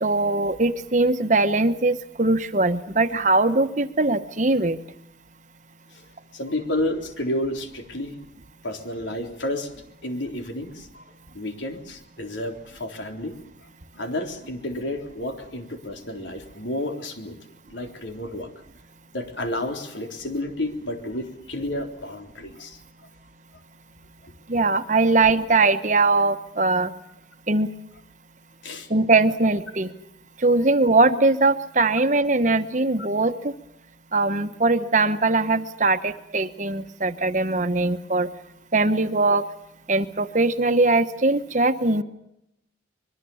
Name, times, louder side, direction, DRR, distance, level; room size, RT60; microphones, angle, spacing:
voice 1, 0.0-4.8 24.5-26.9 27.5-27.7 28.9-29.9 30.4-33.5 34.1-38.3 38.7-39.4 39.9-42.0, right 3 dB, 40° right, 9 dB, 1.2 m, -21 dB
voice 2, 6.3-8.2 8.6-9.7 10.0-11.1 11.3-13.4 13.9-17.4 17.7-18.5 19.1-22.8 24.2-24.3 28.6-28.9, left 1 dB, 85° left, 4 dB, 3.8 m, -31 dB
25.0 x 22.0 x 7.2 m, 0.82 s
head